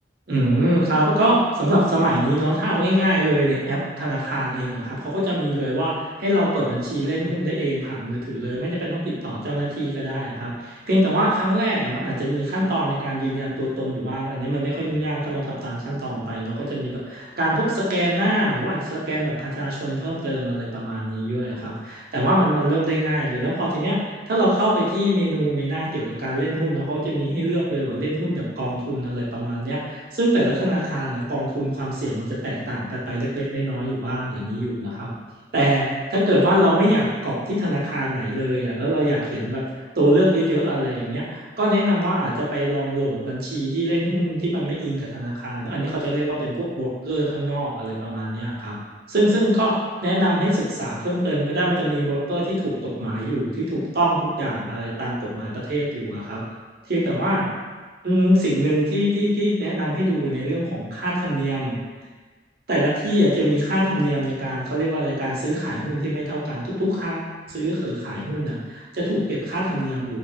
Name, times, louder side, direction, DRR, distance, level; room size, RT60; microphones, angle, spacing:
voice 1, 0.3-24.0 24.3-35.1 35.5-35.9 36.1-39.6 40.0-48.7 49.1-49.7 50.0-56.4 56.9-57.5 58.0-61.7 62.7-67.3 67.5-70.2, equal, 60° right, -6 dB, 0.7 m, -23 dB
2.4 x 2.2 x 3.3 m, 1.4 s
head